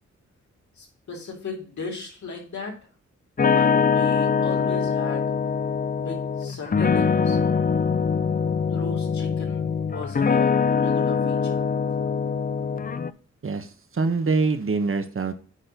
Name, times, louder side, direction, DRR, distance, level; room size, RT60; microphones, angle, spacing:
voice 1, 0.8-2.8 3.5-5.3 6.0-7.4 8.6-11.6, left 4 dB, 75° left, -1 dB, 3.6 m, -37 dB
sound 1, 3.4-13.1, left 6 dB, 30° left, 0.5 m, -23 dB
voice 2, 13.4-15.3, right 4 dB, 45° right, 9 dB, 1.4 m, -24 dB
8.9 x 4.2 x 5.3 m, 0.40 s
cardioid pair, 70°, 29 cm